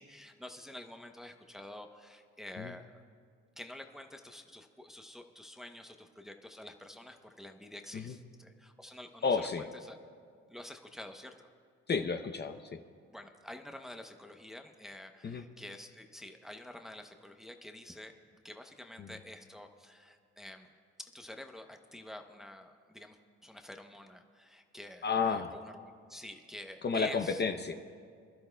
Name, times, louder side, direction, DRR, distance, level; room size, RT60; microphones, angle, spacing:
voice 1, 0.0-3.0 3.6-10.0 10.5-11.5 13.1-20.7 21.0-27.4, left 1 dB, ahead, 5 dB, 0.8 m, -49 dB
voice 2, 9.2-9.7 11.9-12.8 15.2-15.4 19.0-19.1 25.0-25.5 26.8-27.7, left 5 dB, 35° left, 7 dB, 0.7 m, -31 dB
26.0 x 12.0 x 2.3 m, 2.2 s
cardioid pair, 90°, 30 cm